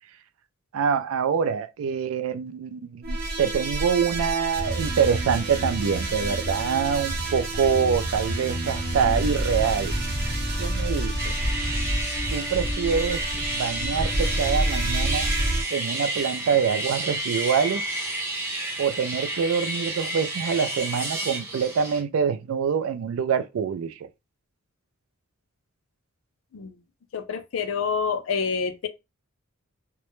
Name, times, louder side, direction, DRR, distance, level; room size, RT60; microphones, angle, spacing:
voice 1, 0.7-10.0 10.6-11.3 12.3-15.3 15.7-17.8 18.8-24.1, right 7 dB, 70° right, 0.3 m, -25 dB
sound 1, 3.0-15.6, right 1 dB, 45° right, 0.8 m, -28 dB
sound 2, 11.2-22.0, right 1 dB, 10° right, 0.6 m, -31 dB
voice 2, 27.1-28.9, left 6 dB, 65° left, 0.4 m, -27 dB
2.1 x 2.0 x 3.0 m
head